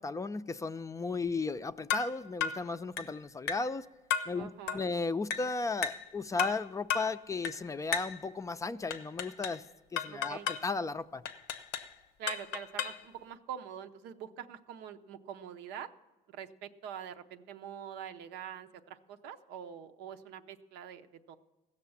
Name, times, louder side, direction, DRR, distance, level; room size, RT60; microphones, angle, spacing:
voice 1, 0.0-3.8 4.3-9.6 9.9-11.2, left 3 dB, 20° left, 0.4 m, -35 dB
sound 1, 1.9-2.1 2.4-2.6 3.0-3.2 3.5-3.7 4.1-4.3 4.7-4.9 5.3-5.5 5.8-6.1 6.4-6.6 6.9-7.1 7.4-7.6 7.9-8.2 8.9-9.6 10.0-10.7 11.3-11.9 12.3-13.0, left 7 dB, 90° left, 0.7 m, -34 dB
voice 2, 4.3-4.9 10.1-10.5 12.2-15.9 16.3-21.4, right 8 dB, 90° right, 0.7 m, -44 dB
15.5 x 6.6 x 7.0 m
cardioid pair, 110°, 17 cm